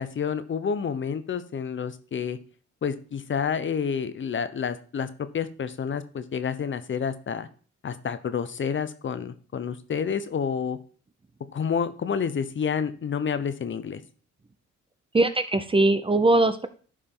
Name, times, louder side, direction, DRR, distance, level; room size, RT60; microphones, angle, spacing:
voice 1, 0.0-2.4 2.8-7.5 7.8-10.8 11.5-14.0, left 7 dB, 40° left, 12 dB, 0.8 m, -29 dB
voice 2, 15.1-16.7, right 2 dB, 20° right, 10 dB, 0.6 m, -21 dB
11.5 x 5.0 x 3.8 m, 0.41 s
cardioid pair, 90°, 30 cm